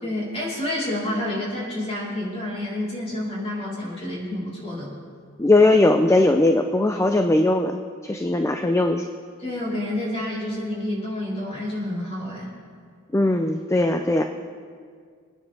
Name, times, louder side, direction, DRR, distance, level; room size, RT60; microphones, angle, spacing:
voice 1, 0.0-4.9 9.4-12.5, left 1 dB, 30° left, -6 dB, 4.0 m, -29 dB
voice 2, 5.4-9.0 13.1-14.2, left 2 dB, 15° left, 5 dB, 0.4 m, -19 dB
25.5 x 9.8 x 3.4 m, 2.1 s
head